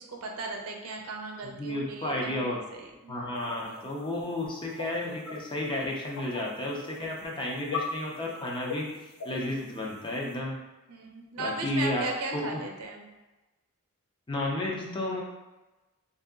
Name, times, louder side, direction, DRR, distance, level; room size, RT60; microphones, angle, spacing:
voice 1, 0.0-2.5 2.7-3.4 9.4-9.8 10.9-13.1, right 3 dB, 75° right, 1 dB, 0.6 m, -37 dB
voice 2, 1.6-2.6 3.1-8.9 9.2-10.6 11.4-12.0 12.3-12.4 14.3-15.2, left 1 dB, 20° left, -2 dB, 0.6 m, -32 dB
sound 1, 3.4-10.3, left 5 dB, 70° left, 0.6 m, -41 dB
3.0 x 2.7 x 3.6 m, 1.1 s
head